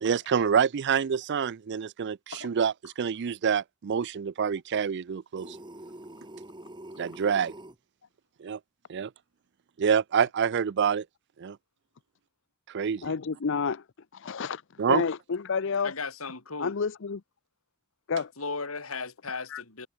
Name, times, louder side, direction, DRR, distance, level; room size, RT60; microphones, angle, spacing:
voice 1, 0.0-5.6 7.0-7.5 8.4-8.6 8.9-9.1 9.8-11.0 11.4-11.6 12.7-13.1 14.8-15.0, right 7 dB, 55° right, 0.4 m, -27 dB
sound 1, 5.4-7.8, right 1 dB, 20° right, 2.8 m, -45 dB
voice 2, 13.0-13.8 14.1-15.9 16.6-17.2 18.1-18.3 19.5-19.6, left 5 dB, 60° left, 0.6 m, -30 dB
voice 3, 15.8-16.7 18.4-19.9, left 4 dB, 85° left, 3.6 m, -36 dB
head